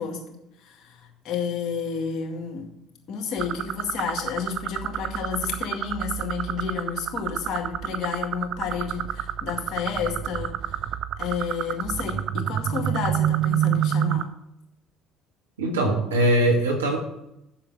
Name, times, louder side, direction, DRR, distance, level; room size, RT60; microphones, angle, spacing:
voice 1, 0.0-2.7 3.1-10.9 11.2-14.3, left 6 dB, 60° left, 2 dB, 2.0 m, -31 dB
sound 1, 3.4-14.2, right 10 dB, 60° right, 0.4 m, -28 dB
voice 2, 15.6-17.0, right 1 dB, 90° right, 2 dB, 1.7 m, -21 dB
7.4 x 6.3 x 7.6 m, 0.86 s
hypercardioid pair, 60°, 0 cm